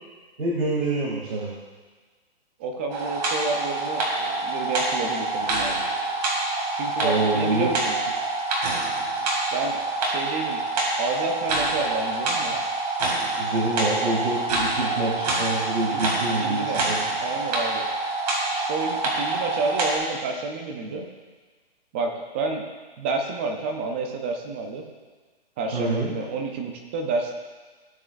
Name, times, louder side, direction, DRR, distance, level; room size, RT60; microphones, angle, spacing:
voice 1, 0.4-1.5 7.0-7.7 13.4-17.0 25.7-26.1, right 2 dB, 75° right, -6 dB, 2.6 m, -26 dB
voice 2, 2.6-5.8 6.7-7.9 9.5-10.6 11.0-12.6 15.9-16.1 16.4-17.9 18.5-21.1 21.9-22.6 23.0-24.8 25.6-27.3, right 3 dB, 10° right, 3 dB, 0.4 m, -30 dB
sound 1, 2.9-20.0, right 2 dB, 40° right, 2.3 m, -26 dB
15.5 x 7.6 x 2.5 m, 1.4 s
hypercardioid pair, 150°, 31 cm